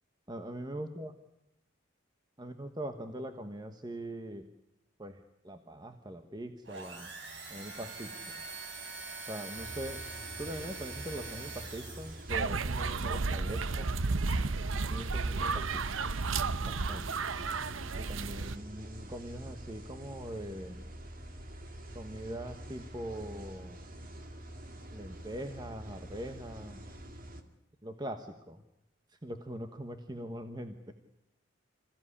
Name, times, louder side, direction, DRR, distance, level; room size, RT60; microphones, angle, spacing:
voice 1, 0.3-1.1 2.4-4.5 5.0-7.1 7.5-8.4 9.3-10.0 10.4-13.9 14.8-16.0 16.6-17.1 17.9-20.8 21.9-23.8 24.9-26.8 27.8-28.6 29.1-30.9, right 1 dB, 20° right, 7 dB, 1.2 m, -42 dB
sound 1, 6.6-12.5, right 4 dB, 65° right, 4.4 m, -44 dB
sound 2, 9.5-27.4, right 1 dB, 45° right, 2.3 m, -46 dB
sound 3, 12.3-18.6, right 4 dB, 90° right, 0.8 m, -32 dB
27.0 x 16.0 x 9.9 m, 0.88 s
head